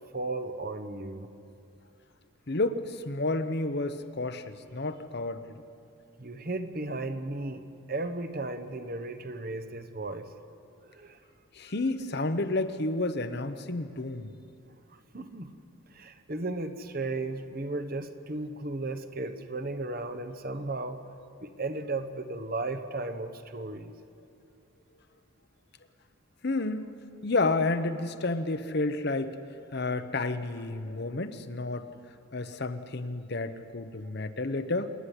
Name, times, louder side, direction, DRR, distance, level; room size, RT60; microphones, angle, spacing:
voice 1, 0.1-1.3 6.2-10.3 10.9-11.2 15.1-15.5 15.9-21.0 21.4-23.9, right 2 dB, 45° right, 9 dB, 1.0 m, -35 dB
voice 2, 2.5-5.4 11.5-14.3 26.4-26.8 27.2-29.4 29.7-31.9 32.3-34.9, left 2 dB, 50° left, 10 dB, 0.9 m, -30 dB
27.5 x 9.5 x 9.9 m, 2.5 s
head